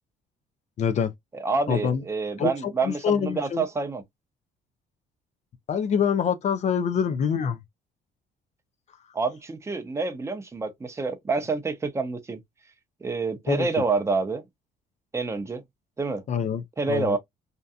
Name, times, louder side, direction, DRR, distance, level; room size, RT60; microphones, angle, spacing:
voice 1, 0.8-1.1 1.7-2.0 2.4-3.6 5.7-7.6 13.5-13.8 16.3-17.2, left 7 dB, 45° left, 0.4 m, -26 dB
voice 2, 1.3-4.0 9.1-12.4 13.0-14.5 15.1-15.6 16.0-16.2 16.8-17.2, right 4 dB, 15° right, 0.6 m, -27 dB
2.7 x 2.2 x 2.3 m
cardioid pair, 110°, 17 cm